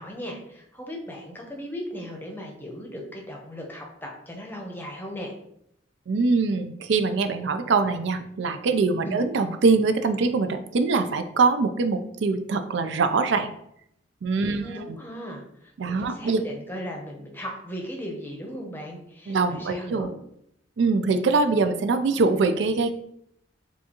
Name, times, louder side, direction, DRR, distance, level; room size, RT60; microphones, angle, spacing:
voice 1, 0.0-5.3 9.0-9.2 14.4-20.1, equal, 10° left, 0 dB, 0.7 m, -37 dB
voice 2, 6.1-13.5 14.2-14.6 15.8-16.5 19.3-20.1 20.8-22.9, right 4 dB, 70° right, 8 dB, 0.4 m, -23 dB
6.9 x 2.4 x 2.9 m, 0.74 s
head